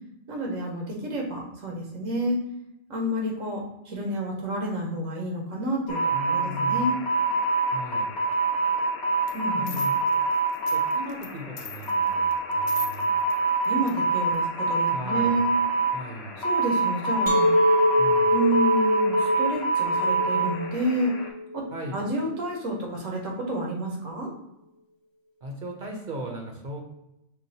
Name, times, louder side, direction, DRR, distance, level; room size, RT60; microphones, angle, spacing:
voice 1, 0.3-2.4 2.9-6.0 6.3-7.0 9.3-9.8 13.7-15.5 16.4-17.5 18.3-21.1 21.5-24.3, right 1 dB, 90° right, 0 dB, 1.3 m, -29 dB
sound 1, 5.9-21.3, right 3 dB, 60° left, 0.8 m, -26 dB
voice 2, 6.1-6.9 7.7-8.1 9.6-10.0 10.5-13.1 14.9-15.4 15.9-16.4 18.0-18.4 21.7-22.0 25.4-26.8, equal, 50° right, 1 dB, 0.7 m, -37 dB
sound 2, 9.3-9.4 9.7-11.3 11.6-13.4 13.6-13.9 14.3-14.4, left 8 dB, 75° left, 0.4 m, -38 dB
Chink clink, 17.3-22.4, left 1 dB, 30° left, 0.6 m, -24 dB
6.2 x 2.3 x 2.7 m, 0.85 s
omnidirectional pair, 1.3 m